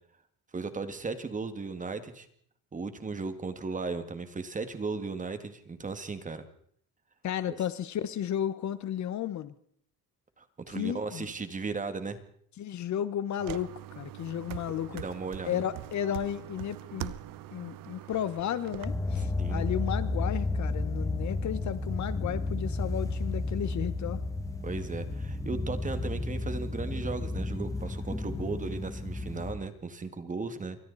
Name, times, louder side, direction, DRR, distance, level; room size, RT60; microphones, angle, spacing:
voice 1, 0.5-2.3 2.7-6.4 10.4-12.2 14.9-15.6 19.4-19.6 24.6-30.8, right 4 dB, 20° right, 9 dB, 2.2 m, -36 dB
voice 2, 7.2-9.5 10.7-11.3 12.6-15.0 15.4-17.1 17.5-24.2 28.2-28.6, left 10 dB, 45° left, 14 dB, 1.4 m, -33 dB
sound 1, 13.4-18.8, right 14 dB, 60° right, 1.2 m, -42 dB
sound 2, 18.8-29.5, left 2 dB, 10° left, 2.3 m, -32 dB
27.5 x 24.5 x 4.2 m, 0.63 s
cardioid pair, 140°, 38 cm